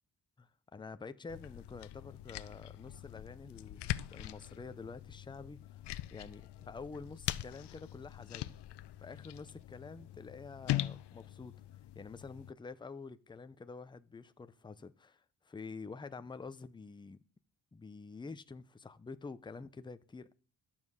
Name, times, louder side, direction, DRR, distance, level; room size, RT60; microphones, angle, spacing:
voice 1, 0.4-5.6 6.1-8.5 9.0-11.5 12.0-17.2 17.7-20.3, left 4 dB, 10° left, 0.5 m, -48 dB
sound 1, 1.3-12.5, left 14 dB, 80° left, 0.7 m, -42 dB
12.0 x 7.3 x 6.3 m
wide cardioid pair, 145°, 41 cm